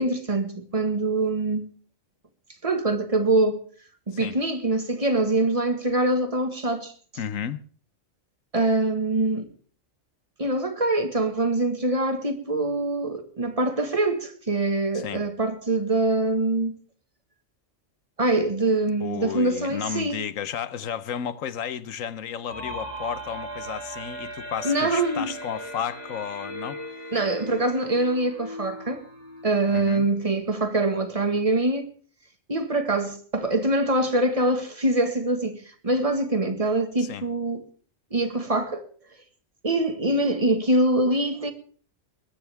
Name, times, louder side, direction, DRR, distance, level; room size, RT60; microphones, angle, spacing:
voice 1, 0.0-1.7 2.6-3.6 4.1-6.9 8.5-9.5 10.4-16.7 18.2-20.2 24.6-25.3 27.1-29.0 29.4-31.9 32.5-37.7 38.1-38.9 39.6-41.5, right 2 dB, 25° right, 1.8 m, -24 dB
voice 2, 7.2-7.6 14.9-15.2 19.0-26.8 29.7-30.1 37.0-37.3, left 8 dB, 85° left, 1.3 m, -33 dB
sound 1, 22.5-30.1, right 1 dB, 30° left, 4.9 m, -38 dB
20.5 x 14.5 x 3.5 m
omnidirectional pair, 1.3 m